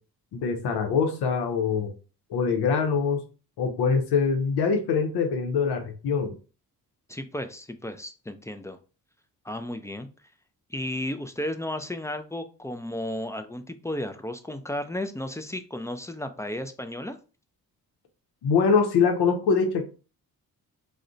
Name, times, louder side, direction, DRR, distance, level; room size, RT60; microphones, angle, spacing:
voice 1, 0.3-1.9 2.3-3.2 3.6-6.3 18.4-19.8, left 5 dB, 80° left, 4 dB, 0.7 m, -24 dB
voice 2, 7.1-8.8 9.4-10.1 10.7-17.2, left 1 dB, 10° left, 8 dB, 0.3 m, -33 dB
2.4 x 2.1 x 3.8 m, 0.35 s
supercardioid pair, 55°, 39 cm